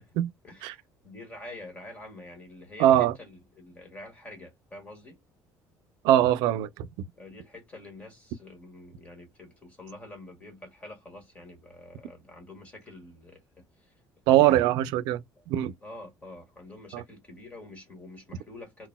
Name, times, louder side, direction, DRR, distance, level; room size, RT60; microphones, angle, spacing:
voice 1, 0.4-5.2 7.2-13.9 14.3-14.7 15.4-15.5 15.8-18.9, left 2 dB, 20° left, 1.6 m, -47 dB
voice 2, 2.8-3.1 6.0-6.7 14.3-15.7 16.9-17.0, right 13 dB, 85° right, 0.4 m, -22 dB
3.9 x 2.1 x 2.2 m
cardioid pair, 155°, 7 cm